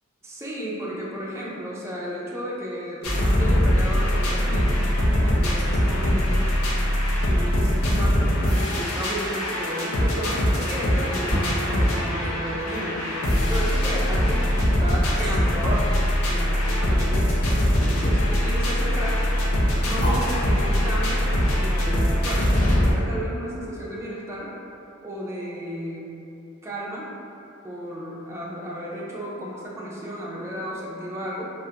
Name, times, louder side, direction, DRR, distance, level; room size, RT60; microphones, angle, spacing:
voice 1, 0.2-4.8 5.2-6.5 7.3-15.9 16.2-17.3 17.9-19.2 19.8-24.5 25.0-26.1 26.6-27.1 27.6-31.5, equal, 15° right, -6 dB, 0.3 m, -33 dB
sound 1, 3.0-22.9, equal, 85° left, 0.5 m, -22 dB
sound 2, 11.1-23.0 23.5-23.6, equal, 15° left, 1.1 m, -35 dB
2.3 x 2.0 x 2.7 m, 2.7 s
head